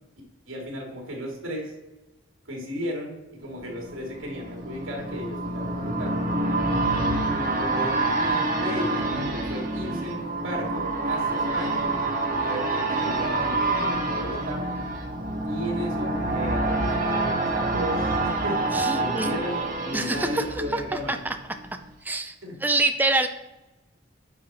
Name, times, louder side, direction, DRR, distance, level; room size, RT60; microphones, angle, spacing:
voice 1, 0.5-1.7 2.5-6.2 6.9-11.9 12.4-14.7 15.4-18.6 19.0-21.1 22.4-22.6, equal, 80° right, 0 dB, 2.8 m, -35 dB
sound 1, 3.5-21.3 21.7-21.8, right 2 dB, 40° right, 1.6 m, -27 dB
voice 2, 18.7-19.4 19.9-21.4 22.0-22.4 22.6-23.3, right 2 dB, 10° right, 7 dB, 0.5 m, -26 dB
10.0 x 5.5 x 4.3 m, 1.0 s
head